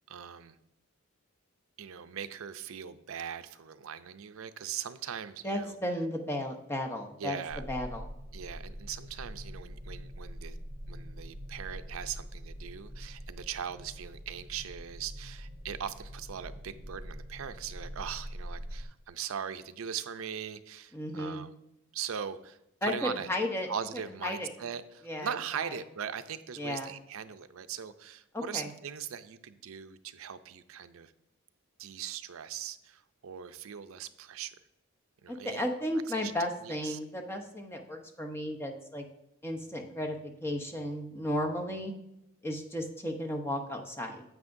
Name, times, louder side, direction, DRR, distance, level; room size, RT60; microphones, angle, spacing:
voice 1, 0.1-0.6 1.8-5.8 7.2-7.6 8.3-10.6 10.9-21.5 21.9-23.3 23.7-31.1 31.8-34.5 35.2-35.7 36.1-36.3 36.6-37.0, right 8 dB, 70° right, 11 dB, 0.5 m, -40 dB
voice 2, 5.4-7.4 7.7-8.1 20.9-21.4 22.8-23.7 24.2-24.5 25.0-25.7 26.6-26.9 28.3-28.7 35.3-39.1 39.4-41.9 42.4-44.2, left 1 dB, 10° left, 3 dB, 0.7 m, -34 dB
sound 1, 7.5-18.8, equal, 40° right, 2.5 m, -44 dB
9.5 x 8.0 x 2.6 m, 0.85 s
head